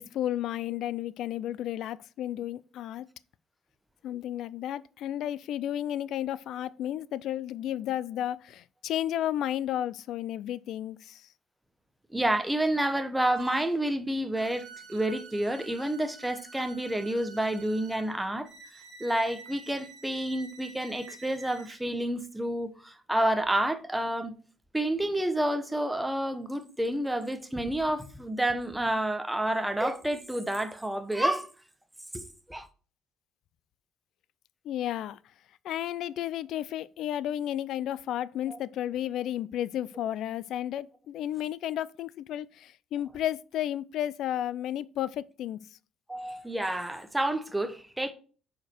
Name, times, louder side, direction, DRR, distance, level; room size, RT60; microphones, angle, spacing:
voice 1, 0.0-3.1 4.0-11.3 34.6-35.2 35.6-45.6, left 11 dB, 70° left, 0.4 m, -33 dB
voice 2, 12.1-24.3 24.7-31.5 32.1-32.7 38.5-38.6 46.1-48.1, right 1 dB, 5° right, 1.0 m, -29 dB
sound 1, 13.3-13.8 14.3-21.9, right 4 dB, 50° right, 3.5 m, -49 dB
9.0 x 5.1 x 4.5 m
cardioid pair, 120°, 0 cm